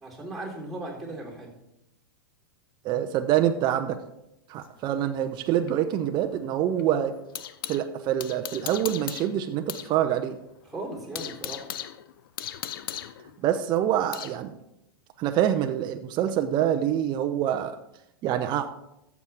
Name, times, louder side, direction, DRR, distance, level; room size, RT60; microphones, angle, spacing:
voice 1, 0.0-1.5 10.7-11.7, right 2 dB, ahead, -3 dB, 3.8 m, -37 dB
voice 2, 2.8-4.0 4.5-7.2 7.7-10.4 13.4-14.6 15.2-17.8 18.2-18.7, right 11 dB, 40° right, 6 dB, 0.7 m, -26 dB
sound 1, 4.6-7.8 8.2-9.9 10.2-10.3 10.7-14.4, left 11 dB, 70° left, 0.6 m, -38 dB
14.0 x 7.2 x 3.5 m, 0.85 s
hypercardioid pair, 110°, 12 cm